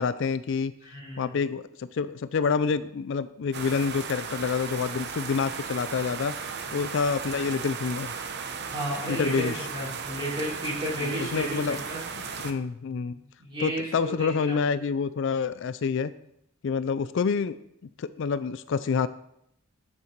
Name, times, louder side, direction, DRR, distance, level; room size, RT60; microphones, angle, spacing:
voice 1, 0.0-0.7 1.2-6.3 6.7-8.1 9.1-9.7 11.0-11.8 12.1-13.2 13.6-16.1 16.6-17.5 18.0-19.1, left 5 dB, 55° left, 14 dB, 0.4 m, -27 dB
voice 2, 0.9-1.3 8.7-11.4 11.9-12.0 13.4-14.3, equal, 25° right, -7 dB, 4.9 m, -32 dB
sound 1, 3.5-12.5, right 5 dB, 50° right, 0.8 m, -36 dB
9.6 x 8.8 x 4.4 m, 0.78 s
head